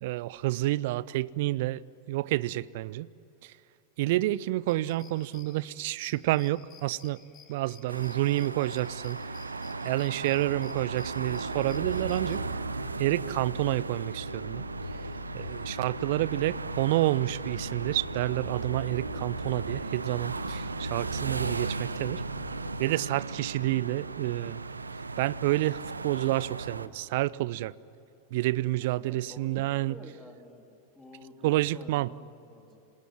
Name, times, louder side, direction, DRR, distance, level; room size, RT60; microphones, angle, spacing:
voice 1, 0.0-1.8 2.1-3.1 4.0-7.2 7.5-9.2 9.8-12.4 13.0-14.7 15.3-22.2 22.8-24.6 25.2-27.7 28.3-29.9 31.4-32.1, right 17 dB, 50° right, 0.5 m, -29 dB
sound 1, 4.7-12.4, left 7 dB, 35° left, 2.6 m, -55 dB
sound 2, 7.9-26.9, right 4 dB, 80° right, 0.9 m, -37 dB
sound 3, 11.2-23.4, left 1 dB, 85° left, 1.4 m, -41 dB
voice 2, 15.8-16.3 28.8-30.7 30.9-32.8, left 2 dB, 10° left, 3.5 m, -51 dB
27.5 x 19.0 x 9.6 m
figure-of-eight pair, 90°, 0 cm